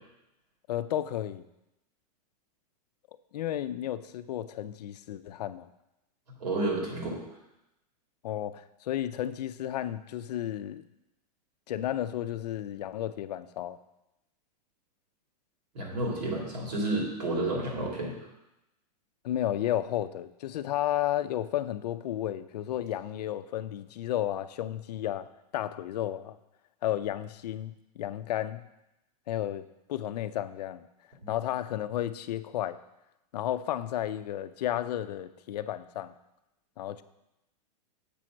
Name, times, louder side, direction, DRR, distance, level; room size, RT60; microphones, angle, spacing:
voice 1, 0.7-1.4 3.3-5.7 8.2-10.8 11.7-13.8 19.2-25.3 25.5-26.4 26.8-28.6 29.3-30.9 31.3-32.8 33.3-36.1 36.8-37.0, left 12 dB, 80° left, 12 dB, 0.5 m, -32 dB
voice 2, 6.4-7.2 15.7-18.1 31.2-31.3, right 2 dB, 85° right, -2 dB, 3.0 m, -30 dB
6.9 x 4.5 x 6.3 m, 0.91 s
supercardioid pair, 165°, 20 cm